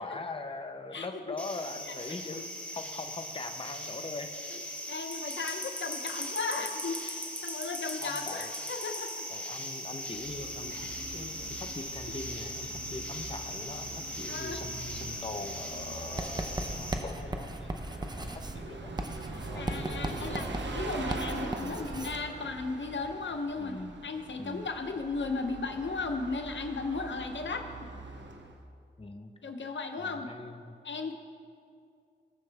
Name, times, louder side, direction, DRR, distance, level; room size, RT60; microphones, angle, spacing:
voice 1, 0.0-2.5 2.7-4.3 8.0-8.5 9.3-19.0 19.5-20.6 21.6-22.0 23.6-24.0 24.4-24.7 29.0-29.3 29.6-29.7 30.0-30.7, left 3 dB, 30° left, 6 dB, 0.7 m, -42 dB
voice 2, 0.9-1.4 1.9-2.0 4.5-9.3 10.7-11.3 14.3-14.7 19.5-20.5 20.7-27.7 29.4-30.3 30.8-31.1, left 4 dB, 85° left, 6 dB, 0.8 m, -36 dB
sound 1, 1.4-16.9, left 1 dB, 5° left, 1.3 m, -39 dB
Bus, 10.0-28.6, right 3 dB, 80° right, 0.9 m, -43 dB
Writing, 16.2-22.2, right 1 dB, 20° right, 0.7 m, -37 dB
18.5 x 6.8 x 3.4 m, 2.3 s
wide cardioid pair, 65°, 19 cm